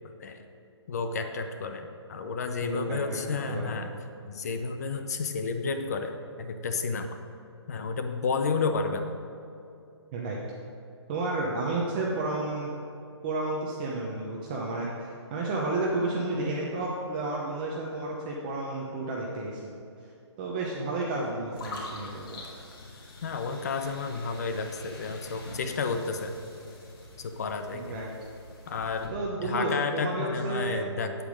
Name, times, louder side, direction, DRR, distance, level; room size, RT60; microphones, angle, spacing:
voice 1, 0.9-3.9 4.2-7.1 7.7-9.1 23.2-26.3 26.6-26.7 27.2-28.0 28.7-29.1 29.4-31.2, left 4 dB, 35° left, 7 dB, 0.6 m, -31 dB
voice 2, 2.6-3.0 3.5-3.7 10.1-10.4 11.1-12.7 13.2-19.7 20.4-22.4 27.7-28.1 29.1-30.8, right 2 dB, 20° right, -3 dB, 0.8 m, -31 dB
sound 1, 21.5-29.1, left 2 dB, 50° left, 2.3 m, -45 dB
8.7 x 8.3 x 5.1 m, 2.6 s
hypercardioid pair, 165°, 15 cm